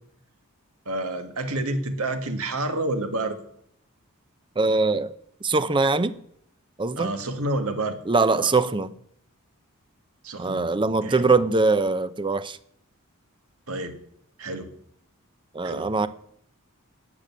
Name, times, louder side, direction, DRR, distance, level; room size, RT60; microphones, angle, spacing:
voice 1, 0.9-3.4 7.0-8.0 8.3-8.5 10.2-11.4 13.7-14.0 14.4-14.7 15.6-15.9, right 2 dB, 75° right, 1.8 m, -29 dB
voice 2, 4.6-5.1 5.4-6.2 6.8-7.1 8.1-8.9 10.4-12.6 15.5-16.1, right 3 dB, 20° right, 0.6 m, -22 dB
12.0 x 7.7 x 9.6 m
head